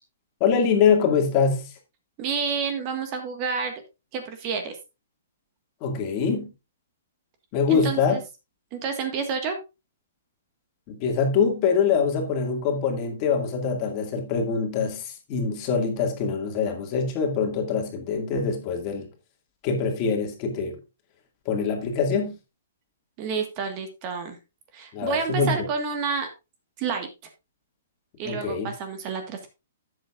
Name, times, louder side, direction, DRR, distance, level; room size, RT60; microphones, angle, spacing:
voice 1, 0.4-1.7 5.8-6.5 7.5-8.2 10.9-19.1 19.6-20.8 21.5-22.3 24.9-25.7 28.2-28.7, left 5 dB, 30° left, 2.2 m, -24 dB
voice 2, 2.2-3.8 4.1-4.8 7.7-8.2 8.7-9.6 23.2-24.4 24.7-26.3 26.8-27.1 28.2-29.5, right 5 dB, 30° right, 1.7 m, -29 dB
12.0 x 8.0 x 2.5 m
hypercardioid pair, 160°, 0 cm